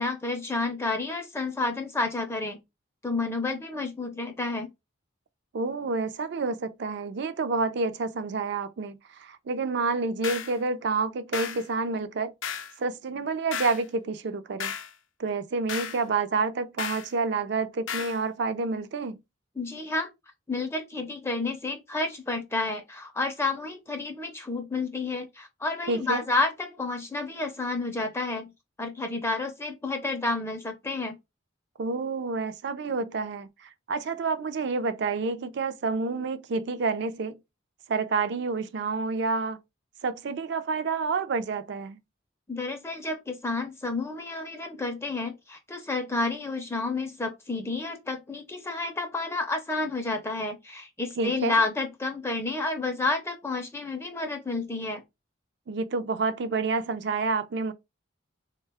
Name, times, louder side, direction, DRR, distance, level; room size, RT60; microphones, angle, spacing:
voice 1, 0.0-2.6 3.0-4.7 19.6-20.1 20.5-28.5 28.8-31.2 42.5-55.0, left 3 dB, 15° left, 0.4 m, -30 dB
voice 2, 5.5-12.3 12.8-14.7 15.2-19.2 25.9-26.2 31.8-37.4 37.9-39.6 40.0-42.0 51.2-51.6 55.7-57.7, right 4 dB, 55° right, 0.4 m, -29 dB
sound 1, 10.2-10.6 11.3-11.6 12.4-12.7 13.5-13.8 14.6-14.9 15.7-16.0 16.8-17.1 17.9-18.2, left 8 dB, 70° left, 0.4 m, -34 dB
3.4 x 2.2 x 3.3 m
head